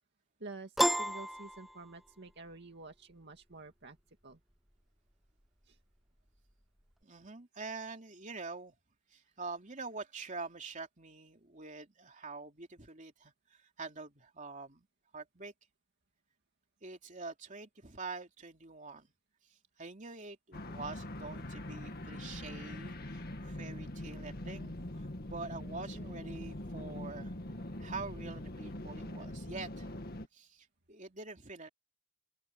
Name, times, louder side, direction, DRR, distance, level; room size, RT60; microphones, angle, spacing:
voice 1, 0.4-4.0 4.2-4.4 5.6-5.8, right 3 dB, 55° right, 2.2 m, -49 dB
Piano, 0.8-2.3, equal, ahead, 0.6 m, -31 dB
voice 2, 7.0-8.7 9.1-13.3 13.8-14.9 15.1-15.5 16.8-19.1 19.8-24.8 25.2-27.3 27.8-29.9 30.3-31.7, right 3 dB, 40° right, 3.1 m, -45 dB
sound 1, 20.5-30.3, left 1 dB, 50° left, 1.9 m, -43 dB
open air
head